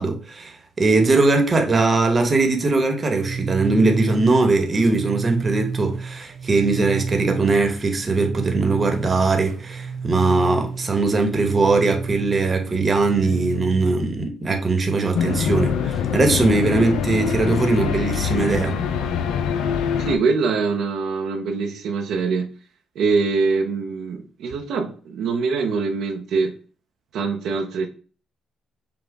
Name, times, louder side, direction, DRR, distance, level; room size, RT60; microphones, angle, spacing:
voice 1, 0.0-18.8, right 3 dB, 35° right, 1.1 m, -20 dB
sound 1, 3.0-14.0, right 5 dB, 60° right, 0.4 m, -31 dB
sound 2, 15.1-20.2, left 7 dB, 90° left, 0.5 m, -24 dB
voice 2, 20.0-22.5 23.0-26.5 27.1-27.9, right 4 dB, 80° right, 0.8 m, -23 dB
5.9 x 2.4 x 3.4 m
cardioid pair, 90°, 0 cm